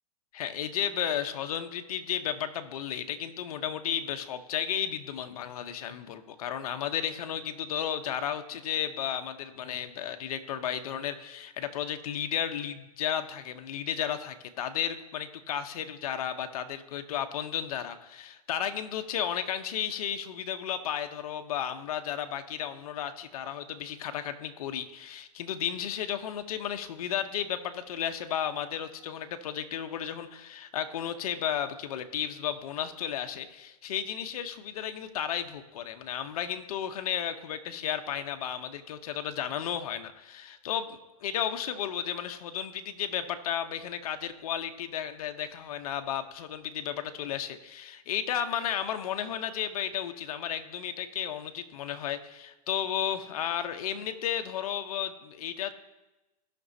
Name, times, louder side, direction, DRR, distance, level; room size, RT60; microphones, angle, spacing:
voice 1, 0.3-40.9 41.2-55.7, left 9 dB, 65° left, 8 dB, 0.8 m, -33 dB
17.0 x 6.0 x 2.7 m, 1.0 s
hypercardioid pair, 150°, 20 cm